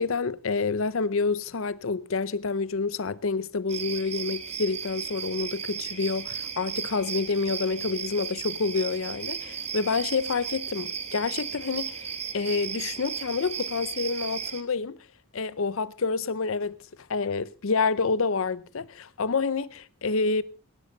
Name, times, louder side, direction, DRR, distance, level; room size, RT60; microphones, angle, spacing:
voice 1, 0.0-15.0 15.3-16.8 17.1-20.4, left 4 dB, 70° left, 0.6 m, -28 dB
sound 1, 3.7-14.6, right 7 dB, 30° right, 1.2 m, -35 dB
17.0 x 12.5 x 4.0 m
head